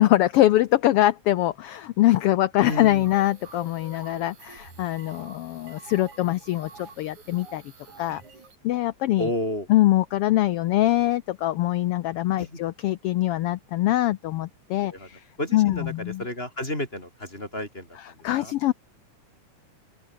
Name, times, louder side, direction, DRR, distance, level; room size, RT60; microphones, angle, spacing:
voice 1, 0.0-7.6 8.0-8.2 8.6-9.3 9.7-15.2 15.5-16.2 18.2-18.7, left 15 dB, 80° left, 1.3 m, -23 dB
voice 2, 2.6-3.1 9.2-9.7 12.4-12.6 14.9-15.1 15.4-18.5, left 1 dB, 20° left, 5.1 m, -32 dB
sound 1, 2.7-8.6, right 4 dB, 80° right, 6.9 m, -48 dB
open air
omnidirectional pair, 3.3 m